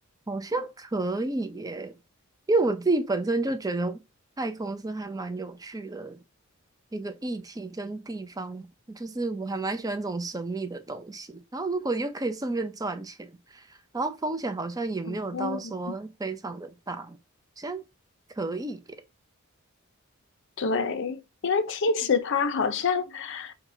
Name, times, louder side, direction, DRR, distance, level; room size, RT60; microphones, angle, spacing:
voice 1, 0.3-1.9 2.5-4.0 4.4-6.2 6.9-13.6 13.9-17.2 17.6-17.8 18.4-18.8, right 2 dB, 15° right, 0.5 m, -31 dB
voice 2, 15.1-15.9 20.6-23.5, left 5 dB, 60° left, 0.5 m, -27 dB
4.7 x 2.2 x 3.7 m
head